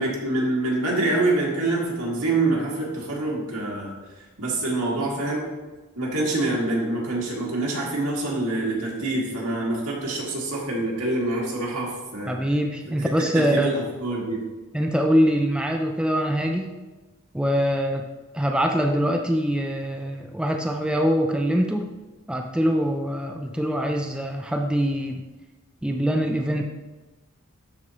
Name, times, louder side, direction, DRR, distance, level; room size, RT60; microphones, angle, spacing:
voice 1, 0.0-3.9 4.4-5.5 6.0-12.4 12.9-14.4, right 2 dB, 85° right, -4 dB, 2.2 m, -26 dB
voice 2, 12.3-13.7 14.7-16.7 17.3-18.0 18.3-21.9 22.3-25.2 25.8-26.6, equal, 5° right, 3 dB, 0.3 m, -23 dB
12.0 x 4.5 x 2.9 m, 1.2 s
head